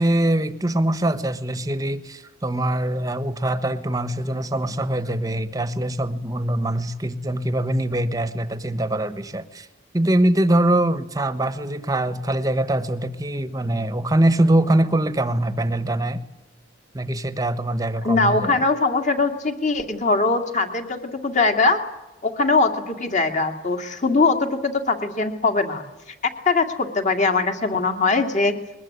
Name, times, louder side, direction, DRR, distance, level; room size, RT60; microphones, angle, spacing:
voice 1, 0.0-9.7 9.9-16.2 16.9-18.6, right 1 dB, 15° right, 12 dB, 1.2 m, -23 dB
voice 2, 18.0-21.8 22.2-25.8 26.2-28.5, left 3 dB, 35° left, 6 dB, 2.3 m, -21 dB
22.0 x 20.5 x 9.6 m, 1.0 s
head